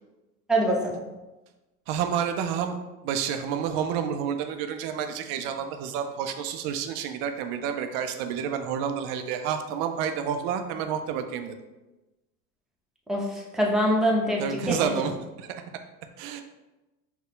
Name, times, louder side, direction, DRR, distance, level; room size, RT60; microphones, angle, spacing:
voice 1, 0.5-0.9 13.1-13.2 13.5-14.8, equal, ahead, -3 dB, 0.9 m, -23 dB
voice 2, 1.9-2.8 3.0-11.6 14.4-15.6 16.2-16.4, right 8 dB, 40° right, 7 dB, 0.4 m, -29 dB
5.5 x 2.3 x 3.7 m, 1.1 s
figure-of-eight pair, 80°, 50 cm